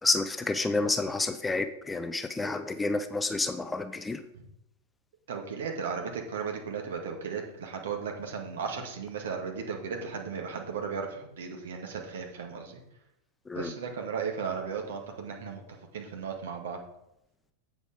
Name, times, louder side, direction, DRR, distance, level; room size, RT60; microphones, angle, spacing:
voice 1, 0.0-4.2 13.5-13.7, left 3 dB, 10° left, 10 dB, 0.5 m, -29 dB
voice 2, 5.3-12.8 13.6-15.6 15.9-16.8, right 6 dB, 60° right, 2 dB, 1.8 m, -35 dB
8.2 x 6.3 x 5.0 m, 0.82 s
figure-of-eight pair, 90°, 0 cm